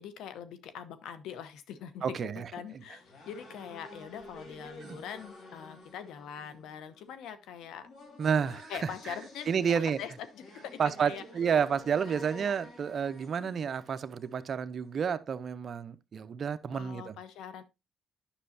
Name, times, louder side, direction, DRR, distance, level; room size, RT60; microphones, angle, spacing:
voice 1, 0.0-2.1 2.5-7.9 8.3-10.4 10.7-11.2 13.4-13.6 16.7-17.6, left 8 dB, 85° left, 0.9 m, -43 dB
voice 2, 2.0-2.5 4.8-5.0 8.2-8.7 9.5-10.0 10.8-17.1, right 7 dB, 50° right, 0.6 m, -30 dB
sound 1, 2.7-14.5, left 2 dB, 70° left, 3.2 m, -51 dB
9.9 x 6.2 x 2.7 m
cardioid pair, 90°, 0 cm